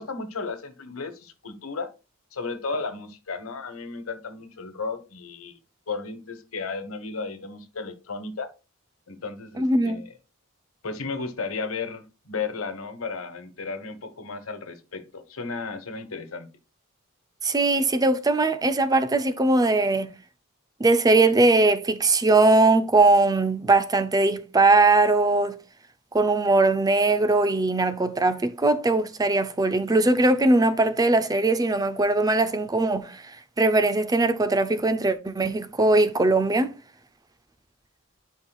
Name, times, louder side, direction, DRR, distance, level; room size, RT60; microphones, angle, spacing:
voice 1, 0.0-1.9 2.3-5.6 5.9-8.5 9.1-10.1 10.8-16.5, left 4 dB, 75° left, 1.3 m, -34 dB
voice 2, 9.6-10.0 17.4-20.1 20.8-25.6 26.1-33.2 33.6-36.7, right 2 dB, 15° right, 0.5 m, -20 dB
11.0 x 5.5 x 2.3 m
head